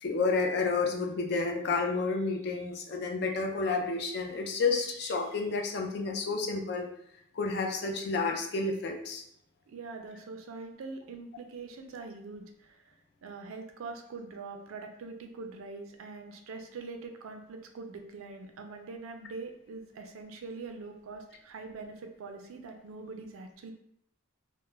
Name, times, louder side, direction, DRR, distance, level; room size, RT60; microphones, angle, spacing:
voice 1, 0.0-6.9 7.3-9.2, left 4 dB, 50° left, 2 dB, 0.3 m, -30 dB
voice 2, 9.7-12.9 13.2-23.7, right 4 dB, 75° right, 5 dB, 0.4 m, -43 dB
2.2 x 2.0 x 3.1 m, 0.73 s
head